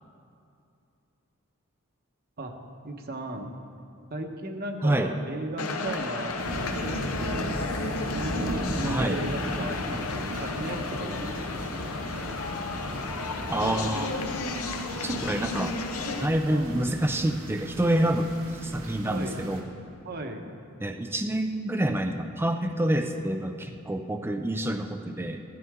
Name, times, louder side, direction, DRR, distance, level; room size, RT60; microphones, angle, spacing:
voice 1, 2.8-3.5 4.1-7.6 8.1-12.0 16.5-16.8 19.1-19.4 20.0-20.5, right 2 dB, 45° right, 4 dB, 1.1 m, -36 dB
sound 1, 5.6-16.3, left 3 dB, 80° left, 0.9 m, -33 dB
sound 2, 6.4-19.6, equal, 90° right, 2.0 m, -36 dB
voice 2, 8.8-9.2 13.5-14.1 15.0-15.8 16.2-18.3 18.6-19.6 20.8-25.4, right 1 dB, 10° right, 5 dB, 0.5 m, -27 dB
16.0 x 12.5 x 3.7 m, 2.5 s
head